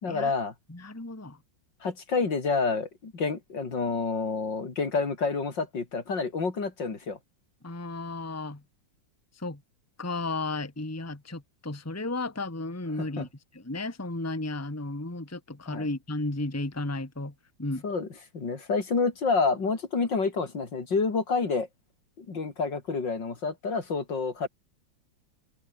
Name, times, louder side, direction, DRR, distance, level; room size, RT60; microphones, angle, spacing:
voice 1, 0.0-0.5 1.8-7.2 13.0-13.3 15.7-15.9 17.8-18.1 18.3-21.7 22.2-24.5, left 4 dB, 65° left, 3.9 m, -28 dB
voice 2, 0.7-1.4 7.6-8.6 9.4-9.6 10.0-13.3 13.5-17.3 17.6-17.8, left 2 dB, 10° left, 1.8 m, -34 dB
omnidirectional pair, 2.2 m